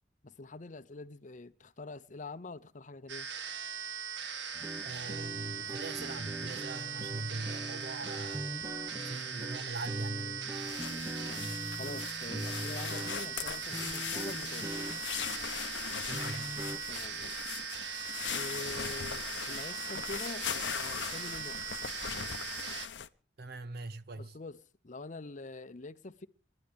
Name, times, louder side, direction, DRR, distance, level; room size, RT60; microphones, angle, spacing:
voice 1, 0.2-3.3 10.7-14.9 16.9-17.5 18.3-21.7 24.1-26.3, left 2 dB, 45° left, 0.7 m, -45 dB
sound 1, 3.1-22.9, right 7 dB, 90° right, 1.7 m, -40 dB
sound 2, 4.5-16.8, right 1 dB, 20° right, 0.7 m, -42 dB
voice 2, 4.8-8.5 9.0-10.5 16.1-16.6 23.4-24.4, right 2 dB, 60° right, 0.9 m, -41 dB
sound 3, 10.5-23.1, left 9 dB, 85° left, 0.7 m, -40 dB
29.0 x 12.0 x 3.5 m
head